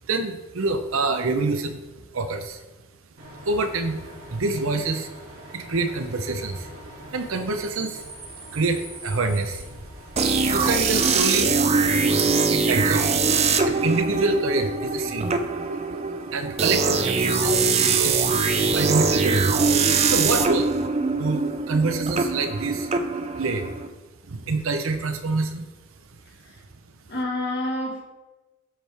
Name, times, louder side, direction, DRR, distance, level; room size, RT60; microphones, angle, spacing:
voice 1, 0.1-1.8 2.1-2.6 3.4-5.1 5.5-6.7 7.1-8.0 8.5-9.7 10.4-11.6 12.2-13.3 13.6-15.4 16.3-17.6 18.0-18.3 18.7-19.6 20.1-20.7 21.1-22.9 23.4-23.7 24.3-25.7, right 3 dB, 70° right, 8 dB, 0.7 m, -26 dB
Bus / Idling / Screech, 3.2-11.2, right 1 dB, 50° right, 2.5 m, -42 dB
sound 1, 10.2-23.9, right 4 dB, 30° right, 0.4 m, -22 dB
voice 2, 27.1-28.0, left 1 dB, 50° left, -3 dB, 1.9 m, -28 dB
10.0 x 4.6 x 3.4 m, 1.1 s
head